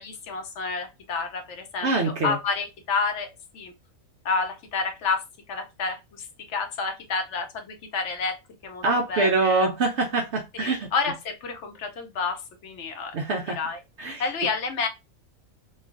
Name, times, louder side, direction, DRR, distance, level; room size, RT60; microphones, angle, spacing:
voice 1, 0.0-3.3 3.5-3.7 4.2-5.2 5.5-8.4 8.6-8.8 9.1-9.7 10.6-13.1 13.6-13.8 14.2-14.9, left 4 dB, 65° left, 0.9 m, -29 dB
voice 2, 1.8-2.4 8.8-10.9 13.1-13.6 14.0-14.3, right 3 dB, 60° right, 0.9 m, -24 dB
3.2 x 2.4 x 3.6 m
omnidirectional pair, 1.4 m